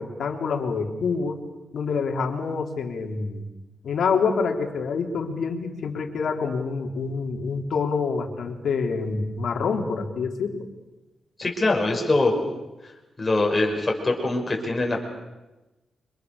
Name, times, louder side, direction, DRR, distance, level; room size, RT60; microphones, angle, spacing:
voice 1, 0.0-1.4 1.7-3.5 3.8-10.7, left 5 dB, 65° left, 4 dB, 3.3 m, -27 dB
voice 2, 11.4-12.4 13.2-15.0, left 2 dB, 15° left, 0 dB, 5.6 m, -23 dB
29.5 x 25.5 x 6.7 m, 1.0 s
wide cardioid pair, 170°, 0 cm